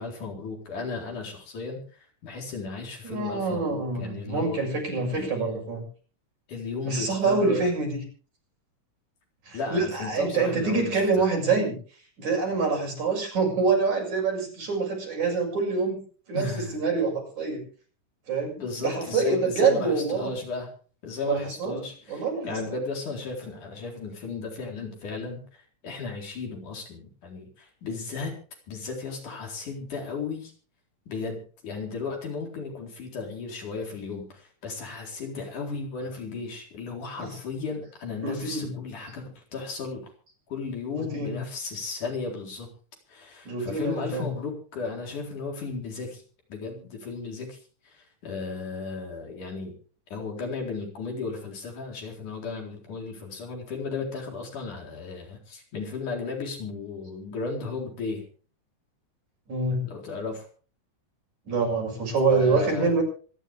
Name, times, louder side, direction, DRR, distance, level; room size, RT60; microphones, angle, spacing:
voice 1, 0.0-4.6 5.1-5.7 6.5-7.7 9.5-11.2 16.3-16.8 18.6-20.7 21.0-28.3 28.7-30.5 31.1-40.1 40.5-42.7 43.1-46.2 46.5-47.6 47.9-49.7 50.1-58.2 59.8-60.5 62.3-62.9, left 4 dB, 90° left, 1 dB, 5.7 m, -35 dB
voice 2, 3.0-5.8 6.8-8.0 9.5-11.8 12.2-16.0 16.3-17.6 18.3-18.6 18.8-20.3 21.2-21.8 22.1-22.6 37.2-37.3 38.2-38.7 41.1-41.3 43.5-44.3 59.5-59.9 61.5-63.0, right 4 dB, 70° right, 0 dB, 8.2 m, -26 dB
25.0 x 11.0 x 3.6 m, 0.40 s
omnidirectional pair, 3.5 m